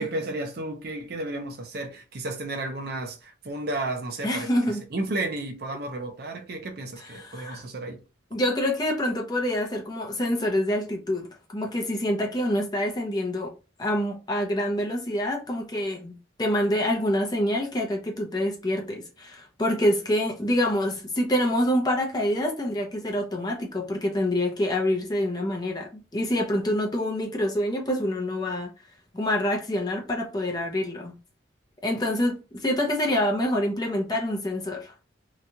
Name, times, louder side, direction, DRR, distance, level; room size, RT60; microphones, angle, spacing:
voice 1, 0.0-8.0, right 2 dB, 50° right, 0.5 m, -33 dB
voice 2, 4.2-4.8 7.1-7.6 8.3-13.5 13.8-28.7 29.1-31.2 31.8-34.9, left 1 dB, 20° left, 0.5 m, -26 dB
2.9 x 2.3 x 2.7 m
head